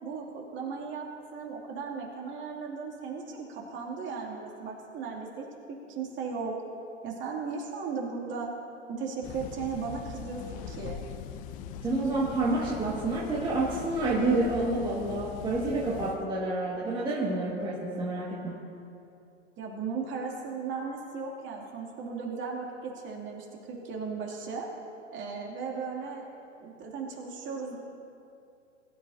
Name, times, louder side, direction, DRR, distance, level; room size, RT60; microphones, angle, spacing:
voice 1, 0.0-6.6 7.0-8.5 8.9-11.1 19.6-24.7 25.1-26.2 26.6-27.8, right 5 dB, 30° right, -1 dB, 2.5 m, -36 dB
sound 1, 9.2-16.2, left 8 dB, 25° left, 0.4 m, -41 dB
voice 2, 11.8-18.6, right 2 dB, 15° right, -5 dB, 1.7 m, -29 dB
21.5 x 12.5 x 2.7 m, 2.6 s
hypercardioid pair, 115°, 37 cm